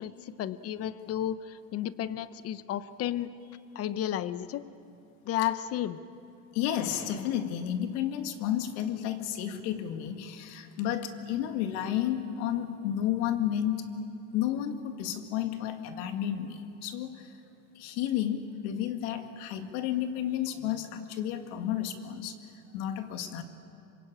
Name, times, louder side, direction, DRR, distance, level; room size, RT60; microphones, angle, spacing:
voice 1, 0.0-3.3 3.7-4.6 5.2-6.0, left 11 dB, 35° left, 15 dB, 0.7 m, -32 dB
voice 2, 6.5-13.9 14.3-17.3 17.8-22.4 22.7-23.4, left 10 dB, 80° left, 7 dB, 2.1 m, -32 dB
25.5 x 22.5 x 8.7 m, 2.7 s
cardioid pair, 155°, 43 cm